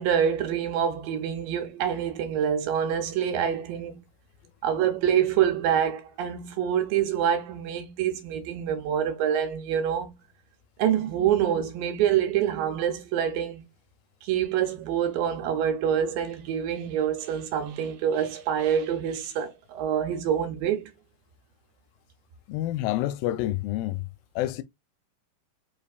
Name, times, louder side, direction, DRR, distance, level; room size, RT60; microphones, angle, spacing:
voice 1, 0.0-4.0 4.6-10.1 10.8-13.7 14.2-20.9, right 9 dB, 80° right, 2.5 m, -26 dB
voice 2, 22.5-24.1 24.4-24.6, left 14 dB, 85° left, 2.2 m, -28 dB
5.3 x 3.4 x 2.3 m
omnidirectional pair, 4.1 m